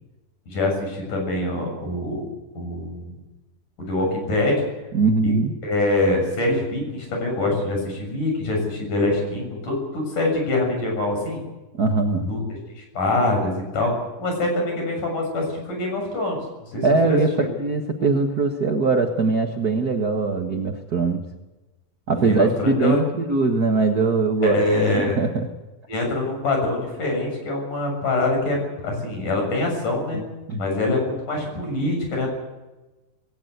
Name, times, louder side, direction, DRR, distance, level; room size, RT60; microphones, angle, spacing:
voice 1, 0.5-2.3 2.5-3.1 3.8-4.6 5.2-5.3 5.6-11.4 12.2-12.4 12.8-13.9 14.2-17.5 22.1-23.0 24.4-25.2 25.9-28.6 28.8-30.2 30.6-32.3, left 2 dB, 60° left, 2 dB, 8.7 m, -24 dB
voice 2, 4.9-5.5 11.7-12.3 16.8-17.3 17.6-21.2 22.1-24.6 25.0-25.5 30.1-30.2 30.5-30.6, right 4 dB, 75° right, 5 dB, 0.8 m, -21 dB
20.0 x 18.5 x 8.1 m, 1.1 s
omnidirectional pair, 4.1 m